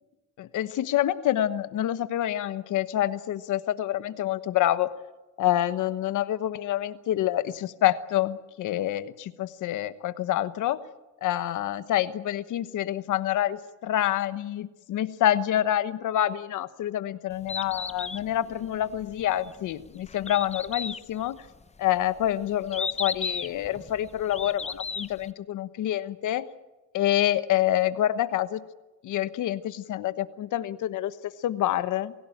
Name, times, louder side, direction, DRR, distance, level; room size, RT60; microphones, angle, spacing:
voice 1, 0.4-4.9 5.4-10.8 11.2-21.4 21.8-26.5 26.9-28.6 29.0-31.1 31.4-32.1, left 12 dB, 80° left, 13 dB, 1.2 m, -27 dB
Bird, 17.3-25.3, left 4 dB, 20° left, 0.8 m, -36 dB
25.0 x 16.5 x 9.0 m, 1.1 s
cardioid pair, 90°, 30 cm